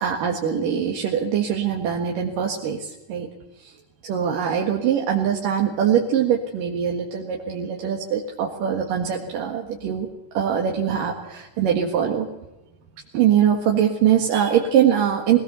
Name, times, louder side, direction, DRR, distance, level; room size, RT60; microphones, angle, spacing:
voice 1, 0.0-3.3 3.6-3.7 4.0-10.1 10.4-12.3 13.1-15.4, right 9 dB, 80° right, 1 dB, 3.4 m, -22 dB
21.0 x 19.0 x 6.9 m, 0.95 s
omnidirectional pair, 3.8 m